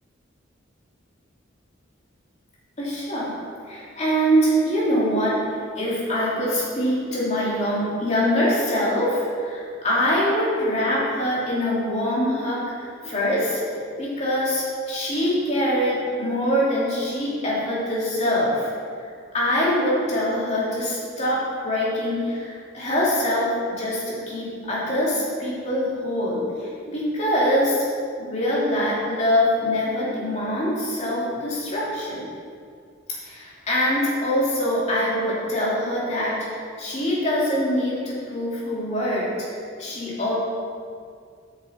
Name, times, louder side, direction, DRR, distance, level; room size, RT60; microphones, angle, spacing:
voice 1, 2.8-3.3 3.7-5.4 5.8-13.6 14.0-18.7 19.3-23.5 23.8-27.8 28.2-32.2 33.2-39.3 39.8-40.3, equal, 35° left, -7 dB, 2.7 m, -24 dB
13.0 x 6.9 x 4.3 m, 2.2 s
head